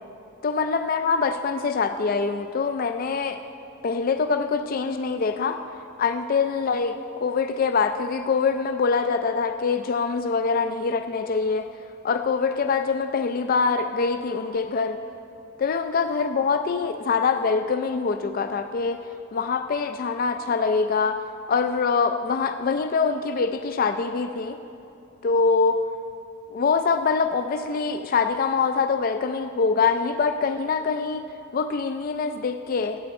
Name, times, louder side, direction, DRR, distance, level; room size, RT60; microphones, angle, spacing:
voice 1, 0.4-3.4 3.8-5.6 6.0-11.7 12.0-15.0 15.6-19.0 19.3-21.2 21.5-24.6 25.2-25.8 26.5-31.2 31.5-33.0, left 5 dB, 45° left, 8 dB, 0.4 m, -24 dB
20.5 x 8.6 x 4.2 m, 2.7 s
head